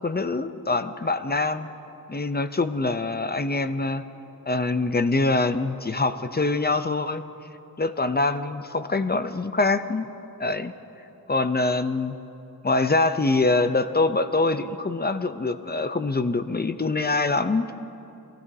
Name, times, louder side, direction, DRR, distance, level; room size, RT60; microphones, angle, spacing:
voice 1, 0.0-1.7 2.1-4.0 4.5-7.2 7.8-10.1 10.4-10.7 11.3-12.2 12.6-17.7, left 3 dB, 25° left, 10 dB, 0.6 m, -24 dB
25.0 x 15.5 x 2.8 m, 2.9 s
wide cardioid pair, 70°, 37 cm